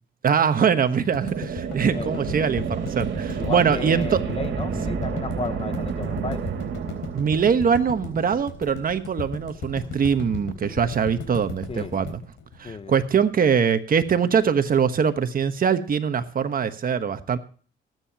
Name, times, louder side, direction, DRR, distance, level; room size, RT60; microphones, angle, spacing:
voice 1, 0.2-4.2 7.1-12.2 12.6-17.4, right 7 dB, 45° right, 10 dB, 1.2 m, -22 dB
sound 1, 1.1-13.3, left 5 dB, 80° left, 3.7 m, -35 dB
sound 2, 1.2-8.7, right 6 dB, 65° right, 2.4 m, -30 dB
voice 2, 1.8-2.3 3.4-6.4 11.7-11.9 12.6-13.0, left 4 dB, 30° left, 13 dB, 0.9 m, -33 dB
20.0 x 9.3 x 2.9 m, 0.41 s
cardioid pair, 90°, 20 cm